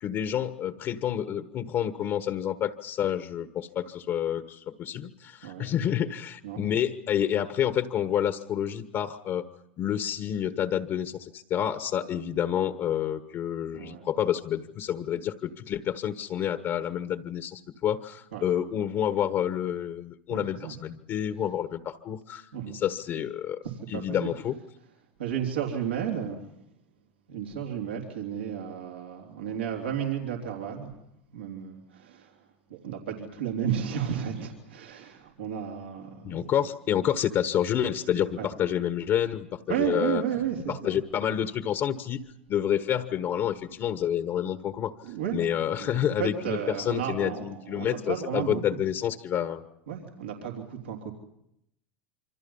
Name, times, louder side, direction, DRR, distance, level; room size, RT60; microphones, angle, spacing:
voice 1, 0.0-9.5 9.8-23.6 23.9-24.6 36.2-40.2 40.7-44.9 45.3-49.6, left 10 dB, 45° left, 10 dB, 1.4 m, -29 dB
voice 2, 5.4-5.7 6.4-6.6 13.7-14.1 18.3-18.5 20.3-20.8 22.5-22.8 23.6-24.3 25.2-26.6 27.3-31.0 31.3-36.5 38.3-38.5 39.7-41.0 45.0-45.4 45.8-48.8 49.9-51.1, right 9 dB, 85° right, 0 dB, 3.5 m, -33 dB
27.0 x 25.0 x 5.6 m, 0.81 s
hypercardioid pair, 90°, 6 cm